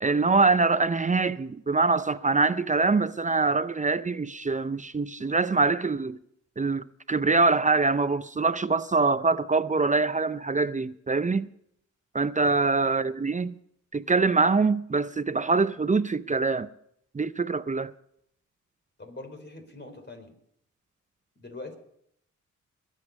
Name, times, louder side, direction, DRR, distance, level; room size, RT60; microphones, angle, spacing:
voice 1, 0.0-6.2 6.6-11.5 12.1-13.5 13.9-16.7 17.1-17.9, right 3 dB, 25° right, 0.6 m, -24 dB
voice 2, 19.0-20.4 21.4-21.8, left 2 dB, 35° left, 4.1 m, -42 dB
21.5 x 8.3 x 5.4 m
cardioid pair, 70°, 31 cm